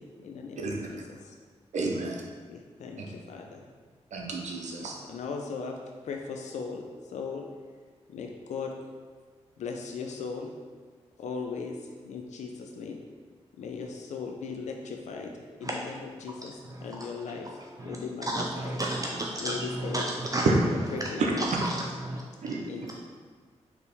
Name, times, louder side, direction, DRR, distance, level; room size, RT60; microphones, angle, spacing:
voice 1, 0.0-1.3 2.5-3.6 4.8-5.7 6.0-6.9 7.1-7.4 8.1-8.7 9.6-10.5 11.2-11.8 12.0-13.0 13.6-16.5 16.8-17.5 17.8-18.7 19.4-20.1 20.9-21.5 22.7-22.9, left 5 dB, 85° left, 2 dB, 0.4 m, -38 dB
voice 2, 1.7-2.2 3.0-3.1 4.1-5.0 20.5-20.6 21.2-21.3 22.4-22.9, right 3 dB, 80° right, 0 dB, 0.6 m, -29 dB
voice 3, 17.5-18.0 18.2-20.5 21.4-22.5, right 1 dB, 30° right, -1 dB, 0.4 m, -33 dB
4.0 x 2.9 x 3.4 m, 1.5 s
cardioid pair, 50°, 12 cm